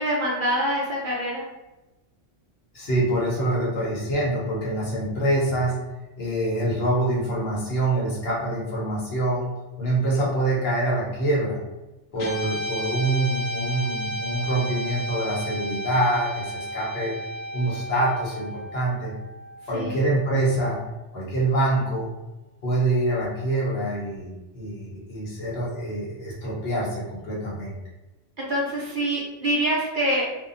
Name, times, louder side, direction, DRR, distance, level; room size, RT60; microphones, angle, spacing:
voice 1, 0.0-1.4 19.7-20.0 28.4-30.2, right 1 dB, 55° right, -5 dB, 0.7 m, -25 dB
voice 2, 2.7-5.7 6.2-9.5 9.8-11.6 12.1-17.1 17.5-19.1 19.7-20.8 21.1-22.1 22.6-27.8, right 1 dB, 60° left, -5 dB, 1.1 m, -25 dB
Guitar, 12.2-20.6, equal, 80° left, 1.1 m, -33 dB
2.7 x 2.3 x 2.5 m, 1.0 s
omnidirectional pair, 1.2 m